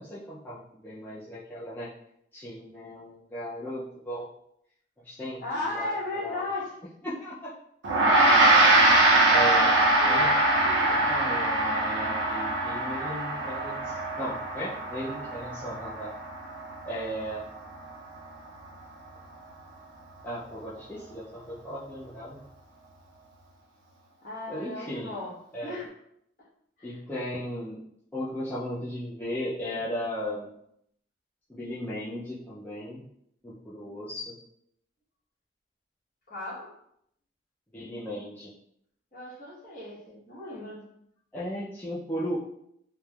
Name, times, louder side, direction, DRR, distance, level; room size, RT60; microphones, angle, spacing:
voice 1, 0.0-1.9 2.3-4.3 5.0-5.9 6.2-6.5 7.0-7.5 9.3-10.3 10.9-16.1 16.9-17.4 20.2-22.4 24.5-25.1 25.5-25.8 26.8-27.8 28.1-30.5 31.5-33.0 33.4-34.4 37.7-38.5 41.3-42.4, equal, 10° left, -10 dB, 0.3 m, -36 dB
voice 2, 5.4-6.7 9.3-9.6 10.0-10.3 10.6-11.2 24.2-25.3 25.6-25.9 26.8-27.0 36.3-36.7 39.1-40.8, left 2 dB, 45° left, -7 dB, 1.1 m, -36 dB
Gong, 7.8-17.5, right 2 dB, 90° right, 0.5 m, -23 dB
3.1 x 2.0 x 2.2 m, 0.73 s
head